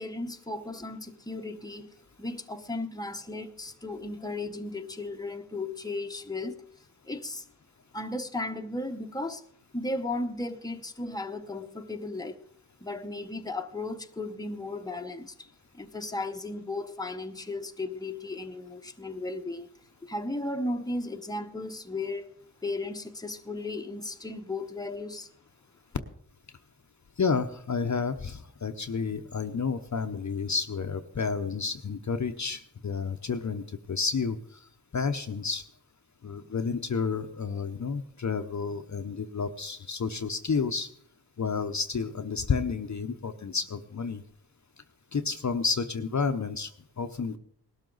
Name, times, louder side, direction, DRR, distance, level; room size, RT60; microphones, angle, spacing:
voice 1, 0.0-1.9 2.2-6.6 7.0-7.5 7.9-9.4 9.7-12.4 12.8-19.7 20.0-22.3 22.6-25.3, left 2 dB, 10° left, 0.9 m, -35 dB
voice 2, 27.2-34.6 34.9-35.6 36.2-40.9 41.4-44.2 45.1-46.7 47.0-47.4, left 5 dB, 45° left, 0.8 m, -30 dB
19.0 x 12.5 x 3.9 m
wide cardioid pair, 80°, 41 cm